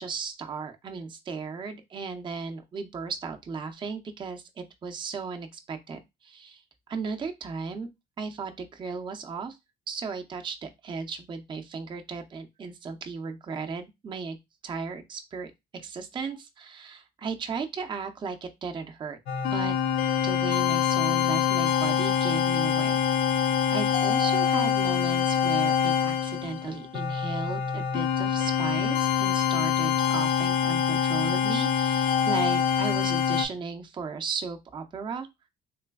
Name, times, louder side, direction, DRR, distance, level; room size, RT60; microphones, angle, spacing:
voice 1, 0.0-7.9 8.2-9.6 9.9-14.4 14.6-15.5 15.8-19.2 19.5-19.7 20.2-23.0 23.3-23.4 23.7-35.3, right 5 dB, 30° right, 5 dB, 0.5 m, -35 dB
sound 1, 19.3-33.4, left 8 dB, 80° left, 0.5 m, -25 dB
3.2 x 3.1 x 2.2 m, 0.21 s
cardioid pair, 110°, 17 cm